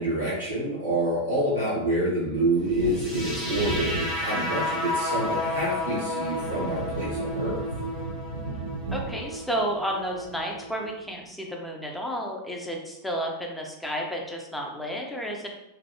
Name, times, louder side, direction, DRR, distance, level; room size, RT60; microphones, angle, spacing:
voice 1, 0.0-7.6, right 1 dB, 90° left, -12 dB, 1.1 m, -27 dB
Wind / Thunder, 2.5-10.8 11.1-11.2, right 2 dB, 70° right, 0.3 m, -36 dB
sound 1, 2.8-10.9, left 1 dB, 50° left, 1.5 m, -32 dB
voice 2, 8.9-15.5, equal, 5° left, 0 dB, 0.6 m, -31 dB
3.2 x 2.6 x 2.7 m, 0.90 s
figure-of-eight pair, 90°, 0 cm